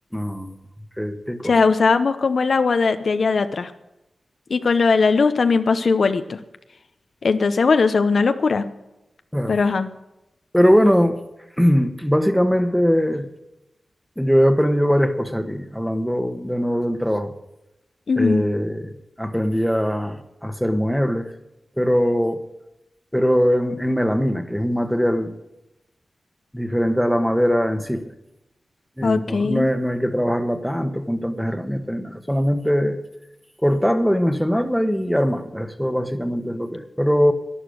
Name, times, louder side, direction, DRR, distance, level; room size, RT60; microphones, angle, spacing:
voice 1, 0.1-0.5 1.0-1.5 9.3-9.6 10.5-11.2 11.6-13.3 14.2-17.3 18.2-18.9 19.2-21.3 21.8-22.4 23.1-25.3 26.5-28.1 29.0-33.0 33.6-37.3, equal, ahead, 1.3 m, -21 dB
voice 2, 1.4-3.7 4.5-6.4 7.2-8.7 9.5-9.9 18.1-18.4 29.0-29.7, left 4 dB, 70° left, 0.8 m, -19 dB
11.5 x 11.0 x 6.4 m
cardioid pair, 65°, 0 cm